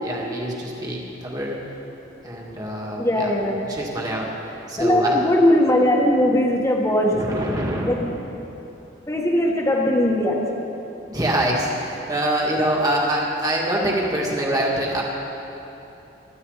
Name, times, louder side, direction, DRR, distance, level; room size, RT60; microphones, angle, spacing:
voice 1, 0.0-1.6 2.2-3.3 3.7-4.3 4.7-5.2 7.1-8.1 11.1-15.0, right 1 dB, 20° right, -3 dB, 2.2 m, -25 dB
voice 2, 3.0-3.6 4.8-7.2 7.9-8.1 9.0-10.4, left 1 dB, 15° left, -1 dB, 1.6 m, -19 dB
25.5 x 11.5 x 4.1 m, 3.0 s
head